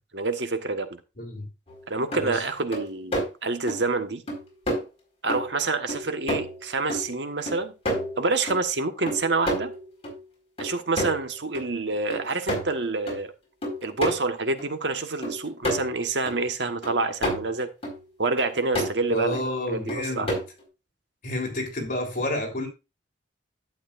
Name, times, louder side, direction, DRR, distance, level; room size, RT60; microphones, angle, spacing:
voice 1, 0.1-0.9 1.9-4.2 5.2-7.7 8.2-9.7 10.6-13.3 13.8-17.7 18.2-19.4 19.7-20.3, right 3 dB, 75° right, 1.3 m, -27 dB
sound 1, 1.7-1.8 2.1-2.3 2.7-3.3 3.7-3.8 4.3-4.4 4.7-4.8 5.3-5.6 5.9-6.6 6.9-8.6 9.1-10.2 10.6-11.3 11.5-11.7 12.1-13.2 13.6-14.2 14.6-14.7 15.2-16.4 16.8-17.5 17.8-18.0 18.4-18.9 19.3-19.4 19.9-20.6, equal, 35° left, 4.7 m, -30 dB
voice 2, 19.1-20.3 21.2-22.7, left 1 dB, 50° left, 3.5 m, -29 dB
11.5 x 8.7 x 2.5 m
head